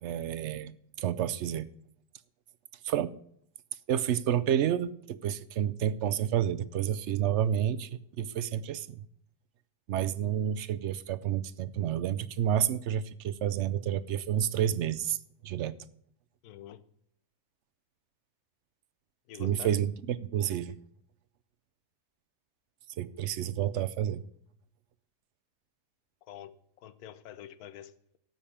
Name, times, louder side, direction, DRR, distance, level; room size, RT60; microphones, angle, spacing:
voice 1, 0.0-1.7 2.8-3.1 3.9-9.1 9.9-15.2 15.4-15.7 19.4-20.7 23.0-24.2, right 10 dB, 65° right, 0.7 m, -30 dB
voice 2, 16.4-16.8 19.3-19.8 26.3-28.2, left 11 dB, 75° left, 1.2 m, -47 dB
13.0 x 5.2 x 8.6 m
omnidirectional pair, 1.6 m